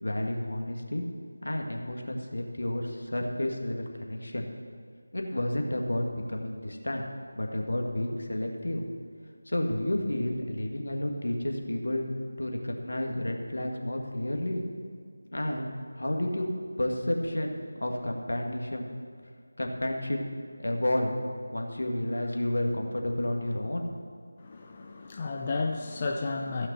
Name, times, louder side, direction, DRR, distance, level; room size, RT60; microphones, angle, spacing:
voice 1, 0.0-1.0 1.4-4.5 5.1-7.1 7.3-8.8 9.5-12.0 12.4-14.6 15.3-16.5 16.8-18.9 19.6-20.2 20.6-21.1 21.5-23.9, left 1 dB, 75° left, 2 dB, 1.8 m, -31 dB
voice 2, 24.4-26.7, left 3 dB, 25° left, 1 dB, 0.6 m, -32 dB
15.0 x 5.9 x 6.1 m, 2.1 s
figure-of-eight pair, 170°, 0 cm